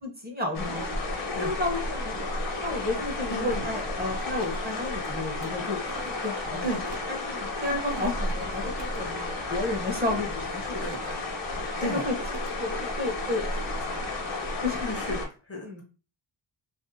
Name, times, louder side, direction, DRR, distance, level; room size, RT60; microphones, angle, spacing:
voice 1, 0.0-0.9 1.4-2.2 2.6-5.8 6.2-6.7 7.1-11.2 11.8-12.1 12.6-13.5 13.9-14.0 14.6-14.9 15.6-15.8, left 2 dB, 20° right, 1 dB, 0.7 m, -32 dB
sound 1, 0.5-15.3, left 2 dB, 65° left, 0.9 m, -32 dB
Mechanisms, 3.1-7.2 7.6-9.1 9.7-11.1 11.4-11.7 12.0-12.6, right 6 dB, 65° right, 0.7 m, -48 dB
voice 2, 3.3-3.6 6.6-7.0 10.8-11.0 11.8-12.0 14.8-15.8, equal, 30° left, 2 dB, 0.6 m, -33 dB
2.5 x 2.4 x 2.6 m, 0.34 s
wide cardioid pair, 115°, 47 cm